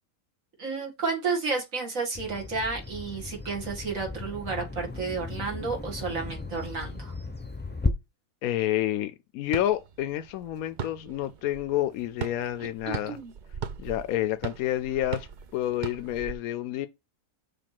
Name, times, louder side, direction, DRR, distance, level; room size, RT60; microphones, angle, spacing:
voice 1, 0.6-7.1 12.9-13.3, right 4 dB, 70° right, 2.5 m, -31 dB
Bird vocalization bird call bird song, 2.1-7.9, left 3 dB, 10° left, 0.5 m, -35 dB
voice 2, 8.4-13.2 13.8-15.3 15.5-16.9, left 13 dB, 85° left, 1.0 m, -29 dB
sound 1, 9.5-16.3, right 7 dB, 50° right, 0.6 m, -39 dB
6.8 x 3.4 x 5.9 m
omnidirectional pair, 1.5 m